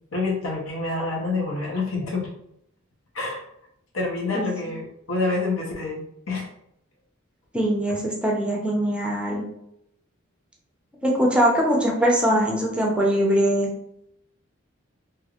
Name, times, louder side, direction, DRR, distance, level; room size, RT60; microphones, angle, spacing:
voice 1, 0.1-2.3 3.1-3.4 3.9-6.5 7.9-8.0, left 3 dB, 85° left, -1 dB, 1.0 m, -27 dB
voice 2, 7.5-9.4 11.0-13.7, equal, 5° right, -2 dB, 0.6 m, -22 dB
3.1 x 3.1 x 2.4 m, 0.76 s
head